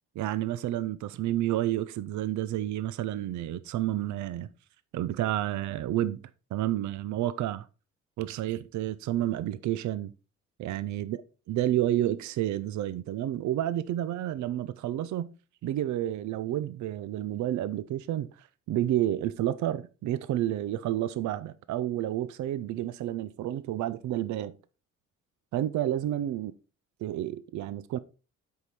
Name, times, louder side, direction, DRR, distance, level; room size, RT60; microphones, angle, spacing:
voice 1, 0.2-4.5 4.9-6.2 6.5-7.7 8.2-10.1 10.6-11.2 11.5-15.3 15.6-24.5 25.5-26.5 27.0-28.0, right 13 dB, 70° right, 0.6 m, -30 dB
7.9 x 5.5 x 4.3 m
cardioid pair, 90°, 30 cm